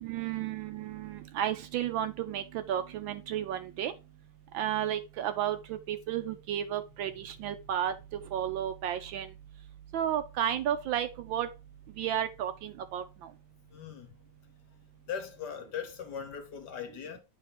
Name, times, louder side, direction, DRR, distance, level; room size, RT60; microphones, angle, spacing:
voice 1, 0.0-3.9 4.5-7.9 8.3-9.3 9.9-11.5 12.0-13.0, right 10 dB, 75° right, 1.3 m, -32 dB
voice 2, 13.7-14.2 15.1-17.2, left 7 dB, 60° left, 1.3 m, -39 dB
8.4 x 3.7 x 4.1 m
omnidirectional pair, 2.4 m